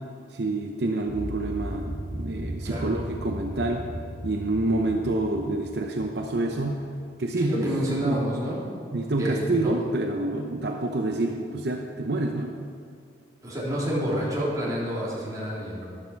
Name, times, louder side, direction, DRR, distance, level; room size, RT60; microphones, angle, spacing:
voice 1, 0.3-3.9 4.2-6.9 7.2-8.2 8.9-12.5, right 2 dB, 60° right, 2 dB, 0.8 m, -28 dB
sound 1, 1.0-7.1, equal, 60° left, 3.5 m, -36 dB
voice 2, 2.6-2.9 7.4-8.6 9.2-9.7 13.4-15.8, equal, 20° right, -7 dB, 3.3 m, -28 dB
12.5 x 12.0 x 4.7 m, 2.3 s
head